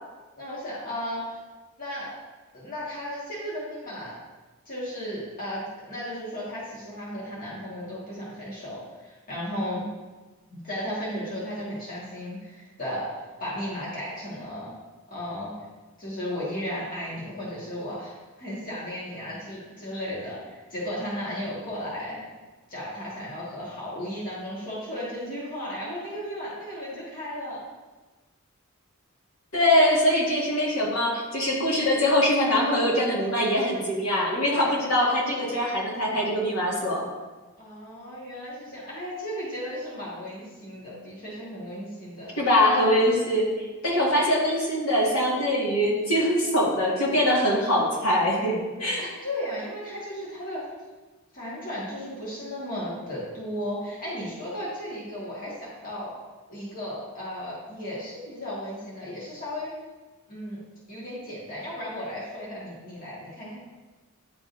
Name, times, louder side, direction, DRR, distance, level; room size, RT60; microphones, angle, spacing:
voice 1, 0.4-1.3 1.8-2.1 2.5-4.2 4.6-9.8 10.5-14.7 15.1-15.5 16.0-22.2 22.7-27.6 37.6-42.4 43.9-44.1 49.0-50.6 51.3-56.1 56.5-59.7 60.3-60.6 60.9-63.6, equal, 40° left, -7 dB, 1.7 m, -35 dB
voice 2, 29.5-37.1 42.4-43.5 43.8-49.0, left 1 dB, 70° left, -5 dB, 1.9 m, -23 dB
10.5 x 3.6 x 2.6 m, 1.3 s
head